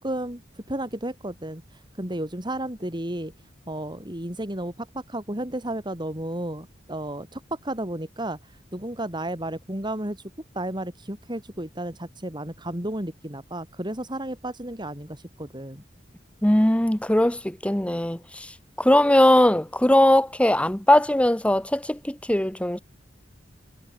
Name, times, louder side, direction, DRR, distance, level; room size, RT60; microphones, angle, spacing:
voice 1, 0.0-3.3 3.7-10.2 10.5-15.8, right 1 dB, 25° right, 4.0 m, -33 dB
voice 2, 16.4-18.5 18.8-22.8, left 1 dB, 5° left, 0.8 m, -20 dB
head